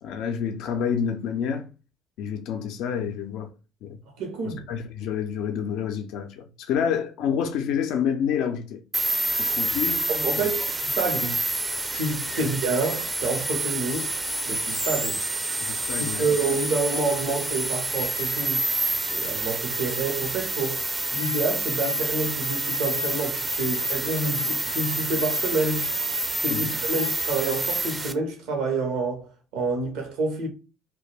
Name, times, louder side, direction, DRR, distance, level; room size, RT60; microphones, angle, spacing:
voice 1, 0.0-1.6 2.2-3.5 3.8-4.0 4.4-8.8 9.4-10.1 10.4-10.5 15.6-16.3 26.5-26.7, left 7 dB, 70° left, 0.4 m, -28 dB
voice 2, 4.2-4.6 10.1-11.4 11.9-14.1 14.5-15.2 16.0-18.7 19.1-20.8 21.1-25.9 26.4-30.5, right 3 dB, 75° right, 0.8 m, -28 dB
sound 1, 8.9-28.1, right 2 dB, 15° right, 0.4 m, -28 dB
2.2 x 2.2 x 3.2 m
hypercardioid pair, 65°, 0 cm